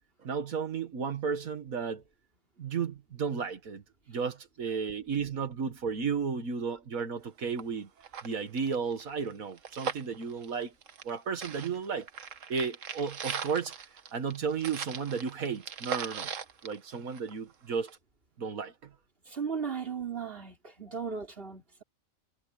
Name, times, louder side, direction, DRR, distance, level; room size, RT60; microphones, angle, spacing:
voice 1, 0.2-2.0 2.6-3.8 4.1-7.9 8.2-10.7 11.0-12.1 12.5-16.3 16.6-17.9 18.4-18.7 20.9-21.0, right 5 dB, 85° right, 2.0 m, -33 dB
sound 1, 7.2-7.3 7.6-7.7 8.0-11.1 11.4-17.5 17.9-18.0, right 7 dB, 65° right, 1.5 m, -39 dB
voice 2, 19.3-21.8, right 6 dB, 40° right, 3.8 m, -36 dB
omnidirectional pair, 1.4 m